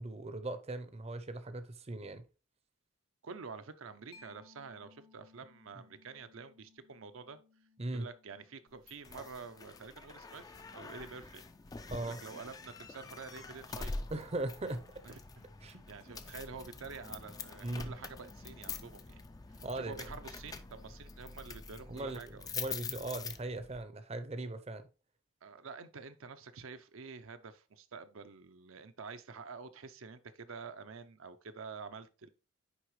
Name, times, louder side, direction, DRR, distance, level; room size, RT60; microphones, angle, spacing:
voice 1, 0.0-2.3 7.8-8.1 11.9-12.2 14.1-14.8 15.6-16.2 17.6-17.9 19.6-20.0 21.9-24.8, right 2 dB, 30° right, 0.6 m, -39 dB
voice 2, 3.2-7.4 7.9-11.4 12.0-14.0 15.0-15.2 15.6-19.2 19.5-22.5 25.4-32.3, right 5 dB, 70° right, 0.6 m, -48 dB
Mallet percussion, 4.1-11.4, left 4 dB, 85° left, 1.2 m, -65 dB
sound 1, 8.9-23.8, left 4 dB, 15° left, 0.3 m, -45 dB
9.6 x 3.5 x 3.1 m
head